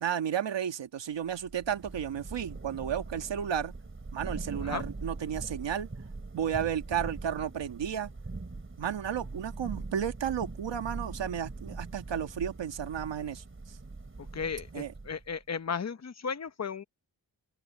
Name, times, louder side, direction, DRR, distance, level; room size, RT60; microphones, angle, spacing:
voice 1, 0.0-3.8 4.1-5.9 6.3-8.1 8.8-13.8 14.7-14.9, right 9 dB, 85° right, 1.6 m, -33 dB
Thunder / Rain, 1.3-15.4, right 3 dB, 30° right, 5.4 m, -42 dB
voice 2, 14.2-16.8, left 6 dB, 40° left, 1.0 m, -35 dB
wide cardioid pair, 90°, 42 cm